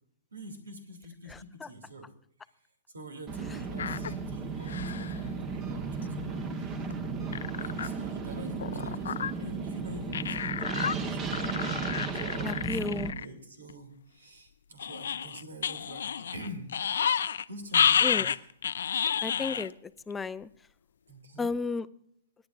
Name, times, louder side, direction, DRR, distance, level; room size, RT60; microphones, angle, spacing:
voice 1, 0.3-2.1 2.4-2.5 2.9-7.0 7.6-11.5 12.1-16.7 17.0-18.4 21.1-21.5, equal, 85° right, 5 dB, 2.5 m, -46 dB
sound 1, 3.3-13.1, right 4 dB, 30° right, 1.2 m, -35 dB
sound 2, 3.8-4.1 4.6-5.2 6.0-6.1 6.4-6.5 6.9-7.0 7.3-7.9 8.6-9.3 10.1-10.9 11.3-13.3 13.7-13.8 14.8-17.4 17.7-19.7 20.1-20.2, left 8 dB, 70° left, 0.5 m, -29 dB
voice 2, 12.4-13.1 18.0-18.3 19.2-19.7 20.1-20.5 21.4-21.8, left 4 dB, 10° left, 14 dB, 0.5 m, -32 dB
26.5 x 10.5 x 2.5 m, 0.71 s
hypercardioid pair, 120°, 0 cm